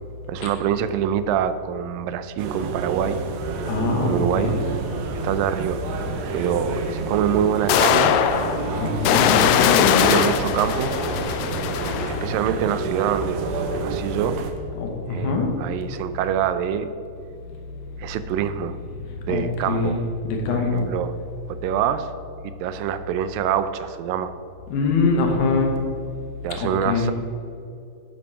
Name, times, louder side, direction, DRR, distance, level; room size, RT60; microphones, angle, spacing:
voice 1, 0.3-3.2 4.0-4.5 5.1-5.8 6.3-8.1 10.0-10.9 11.6-14.4 15.1-16.9 18.0-18.8 19.3-20.0 20.5-21.2 21.5-22.1 22.4-24.3 26.4-27.1, right 9 dB, 90° right, 12 dB, 2.3 m, -25 dB
sound 1, 2.4-14.5, right 3 dB, 75° right, 2.0 m, -29 dB
voice 2, 3.7-4.6 8.8-10.0 14.8-15.5 19.3-20.9 24.7-25.8 26.6-27.1, left 3 dB, 70° left, 2 dB, 2.3 m, -23 dB
sound 2, 5.0-5.1 6.9-7.0 7.7-12.4, left 10 dB, 90° left, 2.3 m, -21 dB
10.5 x 5.2 x 5.5 m, 2.6 s
omnidirectional pair, 3.9 m